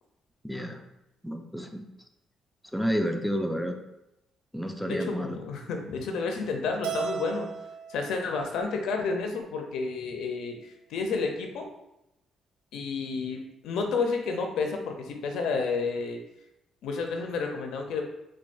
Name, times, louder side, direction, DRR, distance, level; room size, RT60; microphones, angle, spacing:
voice 1, 0.4-0.8 1.2-1.8 2.7-3.8 4.5-5.4, equal, ahead, 4 dB, 0.4 m, -30 dB
voice 2, 4.8-7.5 7.9-10.6 10.9-11.7 12.7-16.2 16.8-18.0, left 4 dB, 85° left, 3 dB, 0.5 m, -30 dB
Keyboard (musical), 6.8-9.2, right 6 dB, 90° right, 0.5 m, -37 dB
4.5 x 2.2 x 2.5 m, 0.87 s
cardioid pair, 90°, 0 cm